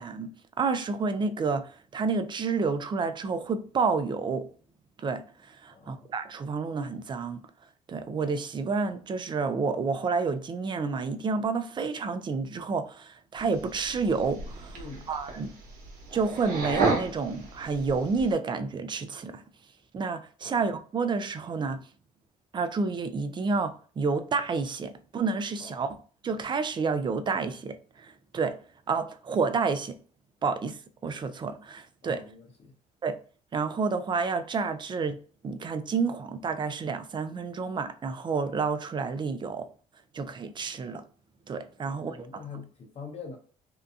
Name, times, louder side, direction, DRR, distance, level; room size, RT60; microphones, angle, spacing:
voice 1, 0.0-4.5 5.0-7.4 7.9-14.8 15.1-15.5 16.1-19.4 19.9-21.9 22.5-25.9 26.2-28.6 28.9-30.0 30.4-32.2 33.0-33.2 33.5-35.2 35.4-39.7 40.1-41.0 41.5-42.2, right 4 dB, 30° right, 0.4 m, -29 dB
voice 2, 5.7-6.1 14.7-15.1 20.4-20.6 25.6-25.8 32.0-32.7 41.8-43.4, left 4 dB, 45° left, 0.7 m, -44 dB
sound 1, 13.4-18.3, right 3 dB, 80° right, 0.9 m, -33 dB
2.7 x 2.3 x 2.4 m
cardioid pair, 90°, 15 cm